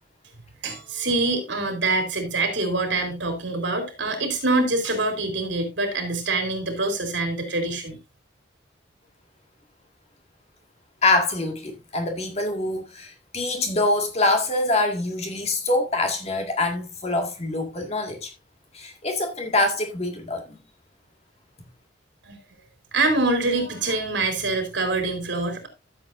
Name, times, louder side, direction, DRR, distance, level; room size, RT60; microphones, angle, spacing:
voice 1, 0.6-8.0 22.2-22.4 22.9-25.7, right 2 dB, 70° right, 3.1 m, -25 dB
voice 2, 11.0-18.3 18.7-20.6, left 2 dB, 35° left, 1.9 m, -25 dB
13.0 x 7.5 x 2.6 m
head